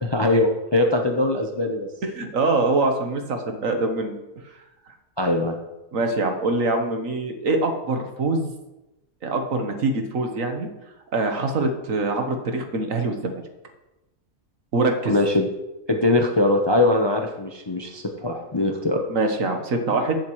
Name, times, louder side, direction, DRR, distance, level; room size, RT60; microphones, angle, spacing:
voice 1, 0.0-1.9 5.2-5.6 15.1-15.5 15.9-19.0, left 2 dB, 25° left, 2 dB, 0.6 m, -21 dB
voice 2, 2.0-4.2 5.9-8.5 9.2-10.7 11.1-13.4 14.7-15.2 19.1-20.2, right 2 dB, 60° right, 5 dB, 1.5 m, -24 dB
15.0 x 7.3 x 3.1 m, 0.98 s
omnidirectional pair, 1.6 m